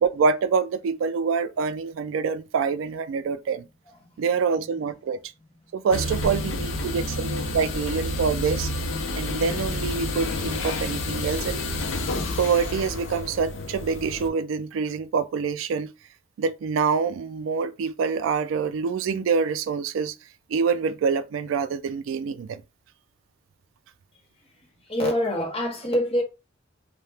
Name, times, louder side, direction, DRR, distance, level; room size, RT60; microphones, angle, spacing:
voice 1, 0.0-3.7 4.2-5.2 5.7-8.7 9.2-11.6 12.4-15.9 16.4-20.1 20.5-22.6, right 5 dB, 75° right, 0.3 m, -26 dB
sound 1, 5.9-14.3, left 1 dB, 75° left, 0.5 m, -29 dB
voice 2, 24.9-26.2, equal, 30° left, 0.9 m, -25 dB
2.8 x 2.1 x 3.2 m
head